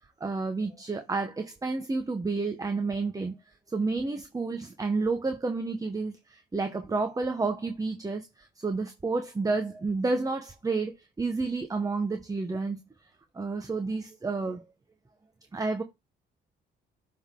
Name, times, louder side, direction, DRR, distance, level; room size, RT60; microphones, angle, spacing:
voice 1, 0.2-3.4 3.7-12.8 13.3-14.6 15.5-15.8, right 3 dB, 20° right, 0.9 m, -30 dB
6.9 x 3.7 x 3.6 m
cardioid pair, 90°, 20 cm